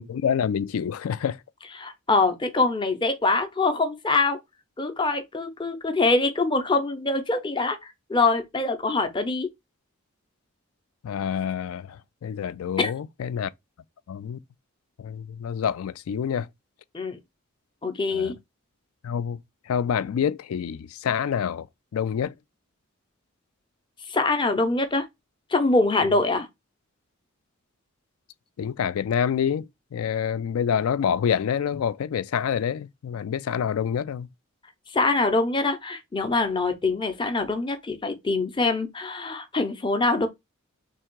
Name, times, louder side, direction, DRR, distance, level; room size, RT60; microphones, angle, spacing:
voice 1, 0.0-1.4 11.0-12.0 12.2-13.5 14.1-14.4 15.0-16.5 18.1-18.3 19.0-19.4 19.7-21.7 21.9-22.3 28.6-34.3, left 8 dB, 80° left, 0.3 m, -27 dB
voice 2, 1.8-4.4 4.8-7.8 8.1-9.5 12.8-12.9 16.9-17.2 17.8-18.3 24.1-25.0 25.5-26.5 34.9-40.3, left 3 dB, 20° left, 0.6 m, -24 dB
3.4 x 2.8 x 4.5 m
head